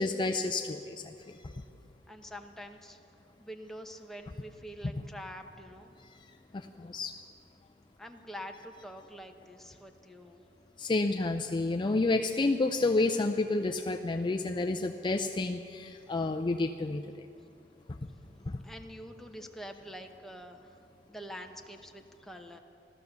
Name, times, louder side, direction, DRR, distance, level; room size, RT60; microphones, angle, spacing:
voice 1, 0.0-1.6 6.5-7.1 10.8-17.0 18.5-18.6, left 2 dB, 25° left, 5 dB, 0.4 m, -30 dB
voice 2, 2.1-3.0 3.4-5.9 8.0-10.4 18.2-20.7 21.1-22.6, equal, ahead, 3 dB, 0.9 m, -46 dB
15.5 x 13.0 x 6.9 m, 2.7 s
head